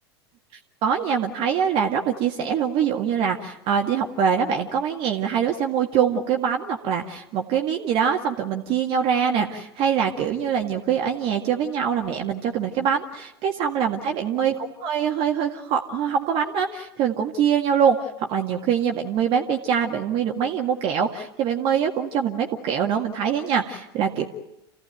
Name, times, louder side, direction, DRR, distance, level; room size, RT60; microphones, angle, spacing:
voice 1, 0.8-14.5 14.8-24.2, right 7 dB, 45° right, 2 dB, 1.9 m, -24 dB
28.5 x 16.5 x 9.2 m, 0.89 s
figure-of-eight pair, 90°, 14 cm